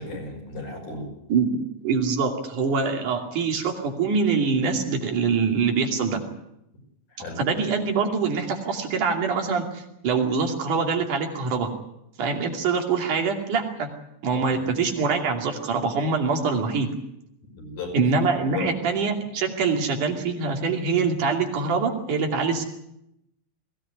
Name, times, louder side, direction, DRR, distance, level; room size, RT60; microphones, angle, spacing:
voice 1, 0.0-1.1 7.1-7.4 14.4-14.5 17.6-18.0 18.5-18.7, left 4 dB, 70° left, 1 dB, 7.4 m, -34 dB
voice 2, 1.3-6.2 7.4-11.7 12.2-13.9 14.2-16.9 17.9-22.6, right 5 dB, 80° right, 3 dB, 4.2 m, -24 dB
21.0 x 17.0 x 9.6 m, 0.82 s
omnidirectional pair, 3.5 m